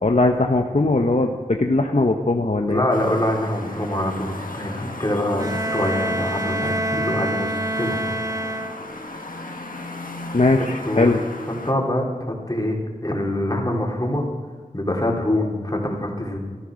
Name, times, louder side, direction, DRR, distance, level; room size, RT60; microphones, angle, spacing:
voice 1, 0.0-2.9 10.3-11.2, left 2 dB, 55° left, 3 dB, 1.0 m, -19 dB
voice 2, 2.7-8.0 10.8-11.1 11.6-14.2 14.7-16.4, left 1 dB, 25° left, -1 dB, 3.5 m, -24 dB
sound 1, 2.9-11.7, left 2 dB, 70° left, 1.8 m, -36 dB
Bowed string instrument, 5.4-9.2, right 1 dB, 25° right, 0.6 m, -27 dB
14.0 x 14.0 x 6.4 m, 1.5 s
wide cardioid pair, 45°, 15 cm